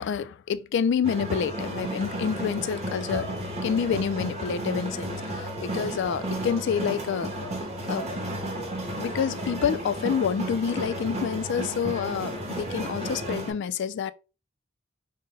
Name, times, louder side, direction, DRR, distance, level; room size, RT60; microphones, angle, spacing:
voice 1, 0.0-3.3 3.6-7.3 7.9-8.1 9.0-14.1, left 7 dB, 60° left, 0.3 m, -28 dB
sound 1, 1.0-13.5, right 1 dB, 35° right, 1.2 m, -33 dB
5.3 x 2.1 x 3.9 m
head